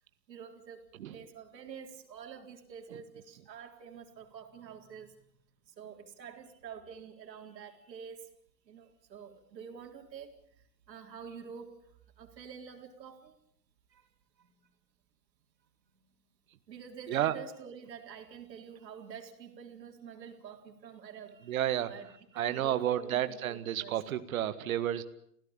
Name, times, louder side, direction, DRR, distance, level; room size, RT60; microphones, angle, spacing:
voice 1, 0.3-5.3 5.7-8.3 8.7-10.4 10.9-11.8 12.2-13.4 13.9-14.1 14.4-14.5 16.7-24.0, right 7 dB, 90° right, 4 dB, 4.0 m, -48 dB
voice 2, 21.4-21.9 22.3-25.0, right 11 dB, 55° right, 11 dB, 1.7 m, -31 dB
27.0 x 16.5 x 8.9 m, 0.71 s
supercardioid pair, 175°, 49 cm